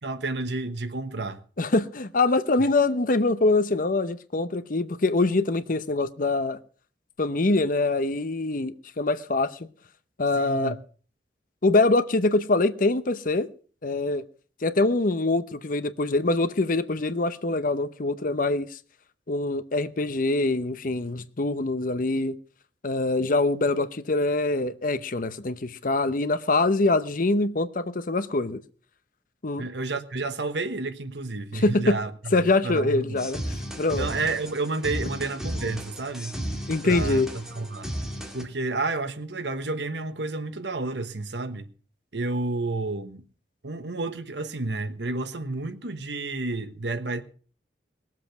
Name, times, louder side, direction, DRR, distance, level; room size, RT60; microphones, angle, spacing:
voice 1, 0.0-1.4 10.4-10.8 29.6-33.3 33.9-36.4 36.8-37.9 38.3-41.7 42.1-43.2 43.6-47.2, right 3 dB, 80° right, 1.3 m, -30 dB
voice 2, 1.6-6.6 7.2-9.5 10.2-10.8 11.6-13.5 13.8-14.2 14.6-18.8 19.3-22.4 22.8-28.6 29.4-29.6 31.5-32.0 32.3-33.4 33.8-34.1 36.7-37.3, left 2 dB, 50° left, 0.8 m, -24 dB
sound 1, 33.2-38.4, equal, 5° right, 2.3 m, -34 dB
20.0 x 7.6 x 5.9 m
head